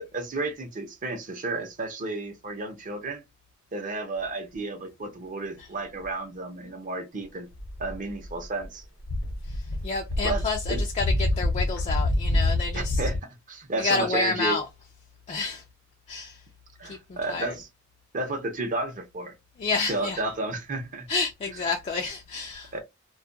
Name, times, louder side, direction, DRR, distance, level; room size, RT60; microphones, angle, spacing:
voice 1, 0.0-3.2 3.7-7.5 7.8-8.8 10.2-10.4 10.7-10.8 12.7-14.6 16.8-17.7 18.1-19.3 19.9-21.1 22.7-22.8, right 2 dB, 40° right, 0.6 m, -32 dB
sound 1, 7.5-8.7 9.0-13.2, left 1 dB, 70° left, 0.8 m, -27 dB
voice 2, 9.5-13.0 13.8-14.6 15.3-15.6 16.1-16.4 16.8-17.5 19.6-20.2 21.1-22.8, left 4 dB, 30° left, 0.3 m, -29 dB
2.3 x 2.1 x 2.6 m
head